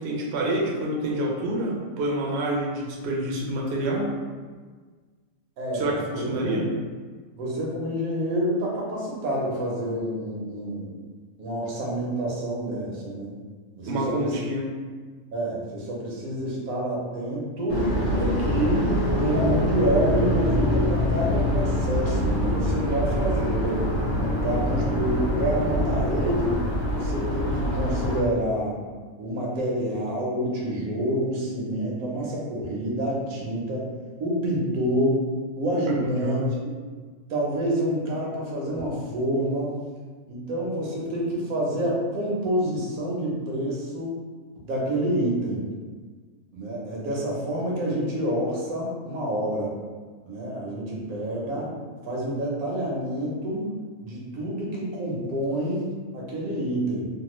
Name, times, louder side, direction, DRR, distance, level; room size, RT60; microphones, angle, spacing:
voice 1, 0.0-4.1 5.7-6.7 13.9-14.7 35.9-36.5, right 1 dB, 65° right, -2 dB, 0.7 m, -27 dB
voice 2, 5.6-6.2 7.4-10.9 11.4-13.3 13.8-14.4 15.3-17.9 18.1-18.9 19.2-23.9 24.4-28.8 29.2-33.9 34.2-35.2 35.5-36.4 37.3-39.8 40.3-44.1 44.6-45.7 46.5-49.7 50.2-51.7 52.0-53.7 54.0-57.1, right 1 dB, 90° right, -3 dB, 1.3 m, -27 dB
sound 1, 17.7-28.2, equal, 55° left, 1.3 m, -25 dB
3.3 x 2.1 x 3.0 m, 1.5 s
omnidirectional pair, 1.5 m